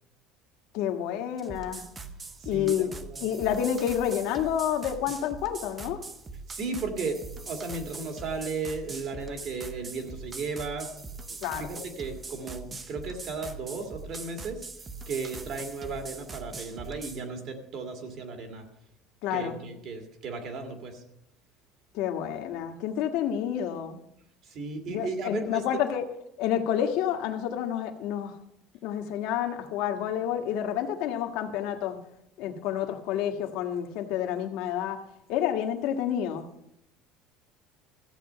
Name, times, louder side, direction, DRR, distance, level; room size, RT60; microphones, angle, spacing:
voice 1, 0.7-1.8 2.4-2.9 3.2-6.0 11.4-11.7 19.2-19.6 21.9-24.0 24.9-26.0 26.4-28.4 28.8-32.0 32.4-35.0 35.3-36.4, left 9 dB, 60° left, 4 dB, 1.5 m, -29 dB
sound 1, 1.4-17.2, right 3 dB, 15° right, 0.7 m, -42 dB
voice 2, 2.4-3.3 6.5-10.9 11.6-14.6 15.1-18.6 19.3-21.0 24.5-25.6, right 4 dB, 40° right, 5 dB, 1.9 m, -35 dB
14.5 x 8.4 x 5.7 m, 0.77 s
cardioid pair, 180°, 0 cm